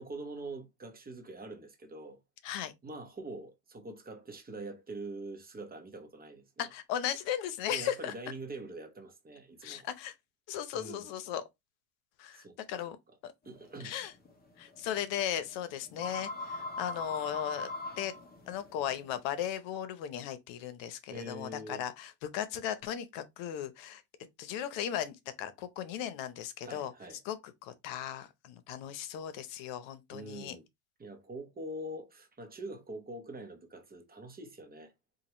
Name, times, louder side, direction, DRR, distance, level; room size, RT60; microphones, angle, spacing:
voice 1, 0.0-2.2 2.8-6.7 7.7-9.9 10.7-11.1 12.3-12.8 13.4-14.0 21.1-21.8 26.6-27.2 30.1-30.6 31.0-34.9, right 2 dB, 20° right, 1.0 m, -44 dB
voice 2, 6.6-8.1 9.6-10.1 10.5-11.4 12.2-13.0 13.2-13.3 13.8-14.1 14.6-17.7 18.0-18.1 18.5-24.0 24.4-26.9 27.2-30.6, left 10 dB, 80° left, 0.8 m, -37 dB
sound 1, 13.5-19.5, left 2 dB, 20° left, 0.8 m, -41 dB
4.7 x 2.5 x 2.9 m
cardioid pair, 140°, 44 cm